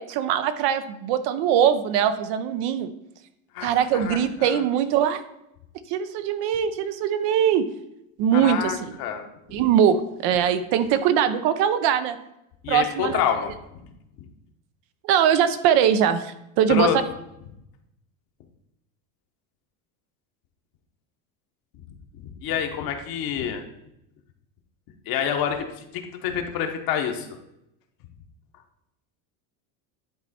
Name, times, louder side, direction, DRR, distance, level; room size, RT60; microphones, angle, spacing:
voice 1, 0.0-2.9 3.6-5.2 5.9-7.6 8.2-8.9 9.5-12.2 12.7-13.2 15.0-16.9, right 9 dB, 65° right, 10 dB, 0.8 m, -22 dB
voice 2, 3.5-4.6 8.3-9.2 9.5-9.6 12.6-13.5 16.7-17.0 22.2-23.6 25.1-25.7 25.9-27.3, left 8 dB, 55° left, 4 dB, 1.3 m, -27 dB
10.5 x 4.2 x 4.3 m, 0.83 s
supercardioid pair, 125°, 44 cm